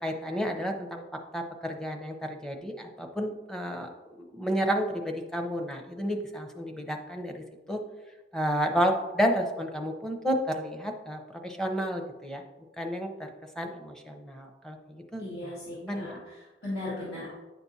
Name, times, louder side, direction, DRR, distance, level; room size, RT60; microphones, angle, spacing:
voice 1, 0.0-1.0 1.3-3.9 4.2-7.8 8.3-12.4 12.8-13.3 13.6-15.5 15.8-16.1, equal, 5° left, 3 dB, 0.7 m, -31 dB
voice 2, 15.2-17.3, left 1 dB, 65° left, -9 dB, 1.9 m, -37 dB
9.5 x 5.9 x 2.7 m, 1.1 s
head